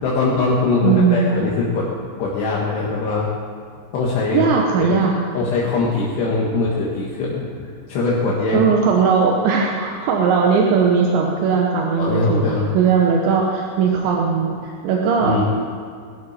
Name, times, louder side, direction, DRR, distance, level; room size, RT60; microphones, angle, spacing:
voice 1, 0.0-1.9 2.2-3.3 3.9-4.5 4.8-4.9 5.3-8.6 12.0-12.7 15.2-15.4, left 3 dB, 70° left, -5 dB, 3.7 m, -21 dB
voice 2, 0.8-1.4 4.3-5.2 8.5-15.4, right 5 dB, 80° right, 0 dB, 3.4 m, -18 dB
22.0 x 13.0 x 4.4 m, 2.2 s
omnidirectional pair, 5.2 m